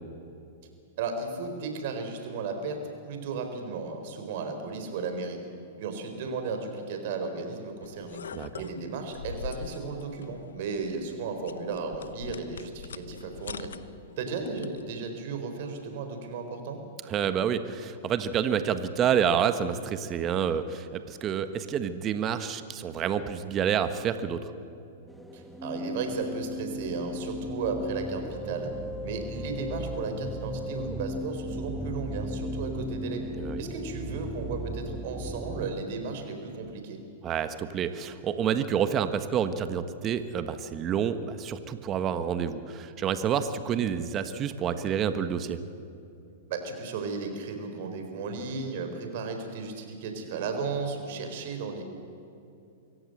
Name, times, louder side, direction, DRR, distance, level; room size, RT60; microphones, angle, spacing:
voice 1, 1.0-5.4 5.8-8.2 8.5-13.7 14.2-16.8 25.3-28.7 29.0-33.2 33.6-37.0 46.5-51.8, right 4 dB, 60° right, 6 dB, 4.3 m, -34 dB
sound 1, 7.8-14.9, left 7 dB, 85° left, 0.9 m, -43 dB
voice 2, 17.1-24.4 33.4-33.6 37.2-45.6, right 8 dB, 30° right, 11 dB, 1.3 m, -28 dB
sound 2, 25.1-35.7, equal, ahead, 1.4 m, -36 dB
24.5 x 16.0 x 7.9 m, 2.7 s
hypercardioid pair, 120°, 0 cm